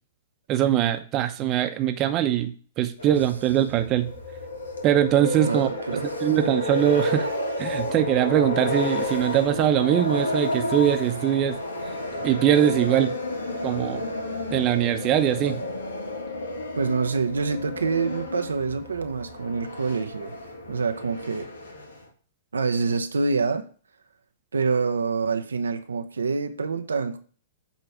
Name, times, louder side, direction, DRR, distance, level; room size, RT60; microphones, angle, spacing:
voice 1, 0.5-4.1 4.8-5.7 6.2-7.3 7.6-11.6 12.2-13.1 13.6-14.0 14.5-15.6, right 11 dB, 35° right, 0.8 m, -22 dB
sound 1, 3.0-22.1, left 1 dB, 85° left, 1.6 m, -31 dB
voice 2, 5.4-6.3 16.8-20.4 20.7-21.5 22.5-23.7 24.5-27.2, right 4 dB, 85° right, 0.7 m, -26 dB
8.1 x 3.2 x 5.9 m
hypercardioid pair, 120°, 0 cm